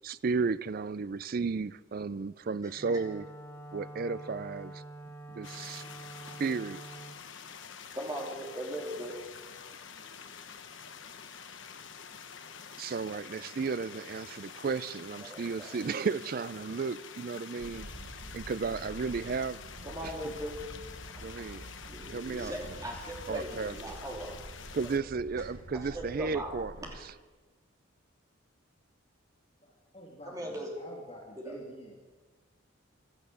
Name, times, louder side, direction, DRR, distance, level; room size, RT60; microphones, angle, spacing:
voice 1, 0.0-3.3 3.7-4.8 5.3-5.8 6.4-6.8 12.8-17.9 18.3-19.6 20.0-20.1 21.2-21.7 22.1-22.5 23.3-23.7 24.7-26.7, right 4 dB, 45° right, 0.4 m, -33 dB
Wind instrument woodwind instrument, 2.7-7.2, right 1 dB, 10° left, 1.0 m, -46 dB
sound 1, 5.4-25.0, left 6 dB, 65° left, 1.0 m, -47 dB
voice 2, 7.9-9.2 15.2-15.7 19.8-20.7 21.9-24.4 24.8-24.9 25.4-25.5 25.7-26.5 26.8-27.0 30.3-30.7 31.4-31.6, right 1 dB, 15° right, 3.0 m, -39 dB
sound 2, 17.6-27.0, right 1 dB, 75° right, 1.3 m, -47 dB
voice 3, 29.6-31.9, equal, 30° left, 2.9 m, -48 dB
16.0 x 12.0 x 6.9 m
head